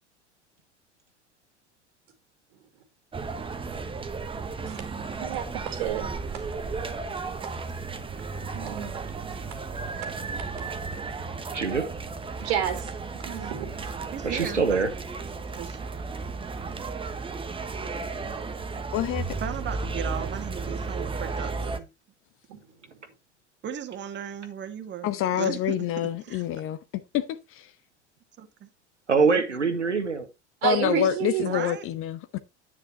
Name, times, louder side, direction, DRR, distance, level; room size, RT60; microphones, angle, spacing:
sound 1, 3.1-21.8, right 4 dB, 15° right, 1.2 m, -34 dB
voice 1, 5.2-6.5 6.7-6.8 7.4-7.6 8.5-9.0 9.5-9.6 10.0-10.1 12.4-13.9 22.5-22.6 30.6-31.7, right 9 dB, 60° right, 2.3 m, -30 dB
voice 2, 11.5-11.9 14.2-14.9 29.1-30.3, right 4 dB, 85° right, 1.8 m, -23 dB
voice 3, 14.1-14.8 15.5-15.8 19.4-21.9 23.6-26.4 28.4-28.7 29.3-29.4 31.4-31.9, right 9 dB, 30° right, 1.8 m, -36 dB
voice 4, 18.9-19.2 25.0-26.8 27.1-27.2 27.5-27.7 30.6-32.4, left 11 dB, 40° left, 0.9 m, -27 dB
10.0 x 9.6 x 2.9 m
figure-of-eight pair, 75°, 35 cm